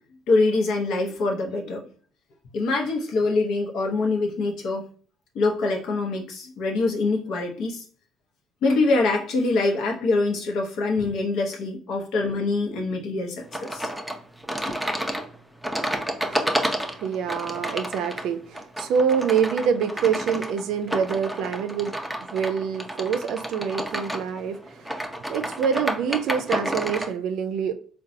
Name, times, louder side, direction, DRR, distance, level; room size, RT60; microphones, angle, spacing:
voice 1, 0.3-1.9 2.5-4.8 5.3-7.8 8.6-13.9, left 3 dB, 70° left, 0.8 m, -24 dB
sound 1, 13.5-27.1, equal, ahead, 0.5 m, -30 dB
voice 2, 16.9-22.0 22.3-24.9 25.3-27.7, right 7 dB, 70° right, 0.4 m, -26 dB
3.8 x 2.2 x 2.6 m
supercardioid pair, 75°, 0 cm